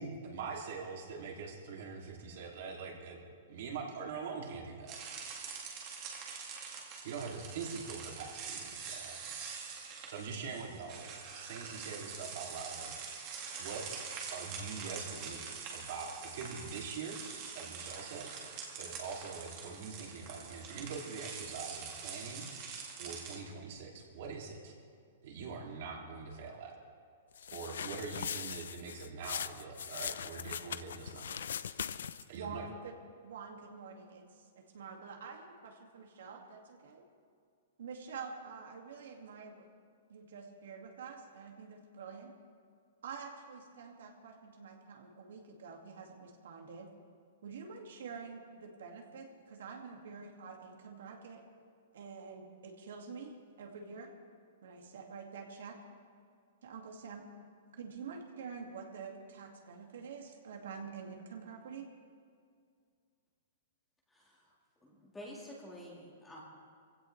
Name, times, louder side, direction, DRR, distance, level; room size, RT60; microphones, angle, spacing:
voice 1, 0.0-3.2 3.5-5.0 7.0-9.2 10.1-13.2 13.6-13.9 14.3-17.2 17.5-18.3 18.8-22.5 23.0-24.7 25.2-26.8 27.5-31.4 32.3-32.6, right 5 dB, 45° right, -1 dB, 2.7 m, -43 dB
sound 1, 4.9-23.4, right 6 dB, 25° right, 2.0 m, -45 dB
sound 2, 27.4-32.4, left 8 dB, 90° left, 0.5 m, -40 dB
voice 2, 32.3-32.9 33.2-37.0 37.8-39.7 40.1-42.3 43.0-46.9 47.4-51.4 51.9-54.1 54.6-55.8 56.6-57.3 57.8-61.9, right 5 dB, 65° right, 2 dB, 2.2 m, -47 dB
voice 3, 64.1-64.4 64.8-66.4, equal, 5° left, -4 dB, 1.9 m, -49 dB
24.5 x 16.0 x 3.3 m, 2.2 s
hypercardioid pair, 180°, 0 cm